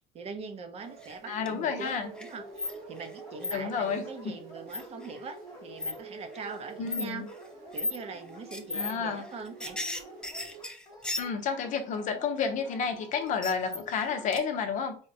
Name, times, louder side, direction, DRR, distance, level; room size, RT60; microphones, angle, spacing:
voice 1, 0.1-7.3 7.7-9.8, right 4 dB, 40° right, 7 dB, 0.6 m, -42 dB
sound 1, 0.8-10.6, right 6 dB, 65° right, 1.1 m, -48 dB
sound 2, 1.0-1.5 1.8-3.1 3.4-3.5 4.7-5.1 5.8-5.9 6.3-6.5 6.9-7.1 7.7-8.0 8.5-8.9 9.2-11.6 13.1-14.0 14.3-14.4, left 3 dB, 5° left, 0.4 m, -35 dB
voice 2, 1.3-2.1 3.5-4.3 6.8-7.3 8.7-9.3 11.2-15.0, left 6 dB, 50° left, 7 dB, 0.7 m, -31 dB
Dog, 2.1-14.3, left 1 dB, 20° left, 1.0 m, -50 dB
4.9 x 2.1 x 2.7 m, 0.41 s
cardioid pair, 125°, 16 cm